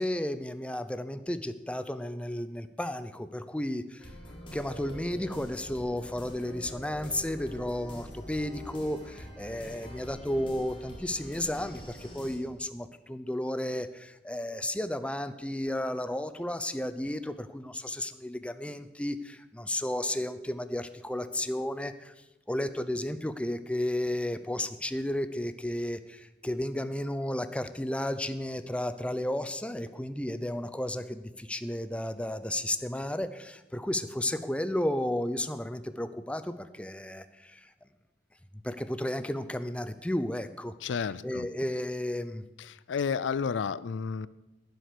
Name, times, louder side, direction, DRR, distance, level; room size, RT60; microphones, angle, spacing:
voice 1, 0.0-4.1 4.5-22.1 22.5-37.7 38.6-40.7 41.2-42.4, left 1 dB, 5° left, 11 dB, 0.5 m, -33 dB
sound 1, 4.0-12.4, equal, 30° left, 2.4 m, -45 dB
voice 2, 40.8-41.5 42.6-44.3, left 6 dB, 75° left, 18 dB, 0.4 m, -31 dB
11.0 x 9.3 x 6.7 m, 1.0 s
head